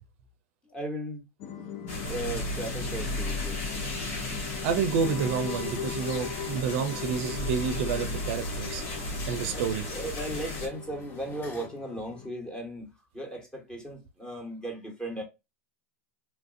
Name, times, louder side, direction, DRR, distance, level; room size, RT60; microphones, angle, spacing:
voice 1, 0.7-1.2 2.1-3.6 9.5-9.6 9.9-12.9 13.1-15.2, right 1 dB, 10° left, 1.2 m, -36 dB
sound 1, 1.4-12.3, left 7 dB, 45° left, 0.7 m, -40 dB
sound 2, 1.9-10.7, left 1 dB, 65° left, 1.6 m, -34 dB
voice 2, 4.6-8.8 9.3-9.9, right 7 dB, 60° right, 0.6 m, -29 dB
sound 3, 6.1-11.7, left 1 dB, 30° left, 1.0 m, -50 dB
3.1 x 2.5 x 2.5 m
hypercardioid pair, 110°, 8 cm